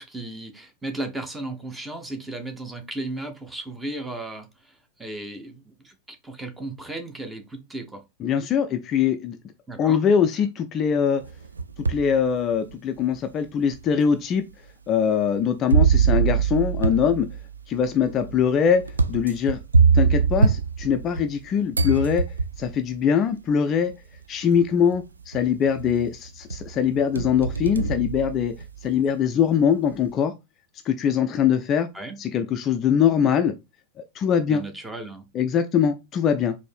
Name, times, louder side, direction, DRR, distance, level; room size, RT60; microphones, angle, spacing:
voice 1, 0.0-4.5 5.0-8.0 9.7-10.0 31.9-32.2 34.5-35.2, right 2 dB, 10° right, 0.9 m, -35 dB
voice 2, 8.2-9.4 9.8-11.2 11.9-14.4 14.9-17.3 17.7-18.8 19.1-19.6 19.9-22.2 22.6-23.9 24.3-28.5 28.8-30.3 30.9-31.9 32.2-33.5 34.0-34.6 35.3-36.6, left 7 dB, 30° left, 0.4 m, -22 dB
sound 1, 11.2-12.1 12.7-12.8 13.7-13.8 15.7-21.4 21.7-22.8 23.9-24.0 24.5-25.0 25.3-26.1 26.5-28.9, right 5 dB, 75° right, 0.3 m, -23 dB
4.2 x 2.7 x 3.4 m
figure-of-eight pair, 90°, 0 cm